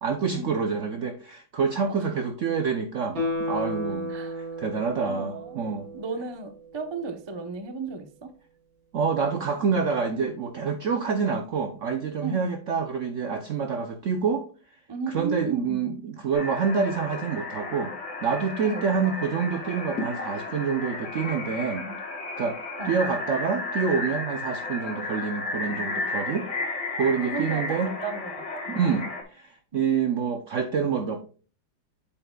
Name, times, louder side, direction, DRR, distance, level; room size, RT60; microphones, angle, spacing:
voice 1, 0.0-5.9 8.9-14.5 15.1-17.9 18.2-21.9 22.4-26.5 27.0-27.9 28.7-31.2, right 6 dB, 70° right, 7 dB, 0.7 m, -27 dB
voice 2, 1.9-2.2 4.1-4.5 5.0-5.6 5.9-8.3 12.2-12.5 14.9-15.8 18.6-18.9 21.8-22.0 22.8-22.9 25.7-25.8 27.2-27.8 28.0-28.8 29.7-29.8, right 4 dB, 35° right, 7 dB, 0.4 m, -34 dB
Guitar, 3.1-6.4 6.8-6.9, left 1 dB, 90° right, 4.0 m, -33 dB
sound 1, 16.3-29.2, left 3 dB, 50° left, 2.2 m, -33 dB
8.1 x 7.6 x 2.2 m, 0.37 s
omnidirectional pair, 2.0 m